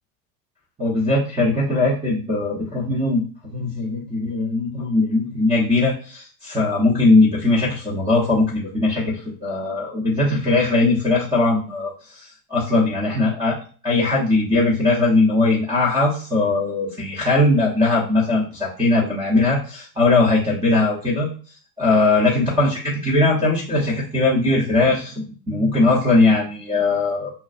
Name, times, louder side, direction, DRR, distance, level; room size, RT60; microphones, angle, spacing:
voice 1, 0.8-3.2 3.5-9.1 9.4-13.6 13.8-21.3 21.8-27.3, left 2 dB, 10° right, -6 dB, 0.8 m, -19 dB
2.3 x 2.3 x 2.4 m, 0.40 s
hypercardioid pair, 90°, 48 cm